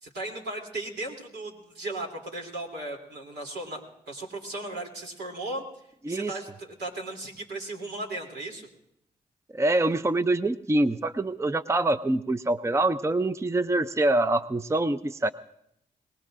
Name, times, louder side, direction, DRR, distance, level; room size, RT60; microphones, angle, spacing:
voice 1, 0.0-5.6 6.1-8.7, right 2 dB, 80° right, 0 dB, 3.0 m, -36 dB
voice 2, 9.5-15.3, right 2 dB, 15° right, 12 dB, 0.6 m, -25 dB
23.0 x 19.0 x 2.6 m, 0.75 s
supercardioid pair, 55°, 17 cm